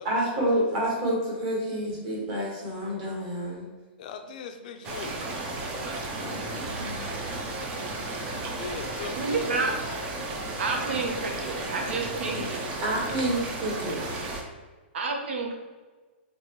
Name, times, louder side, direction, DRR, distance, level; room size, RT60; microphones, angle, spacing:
voice 1, 0.0-3.7 6.1-7.0 12.8-14.0, right 1 dB, 35° right, -4 dB, 1.4 m, -29 dB
voice 2, 4.0-5.2 8.5-9.8, left 6 dB, 45° left, 6 dB, 0.4 m, -39 dB
sound 1, 4.8-14.4, right 2 dB, 20° right, 0.4 m, -34 dB
voice 3, 9.1-9.7 10.6-12.6 14.9-15.5, right 3 dB, 80° right, 2 dB, 0.9 m, -30 dB
4.2 x 3.0 x 2.9 m, 1.3 s
hypercardioid pair, 170°, 6 cm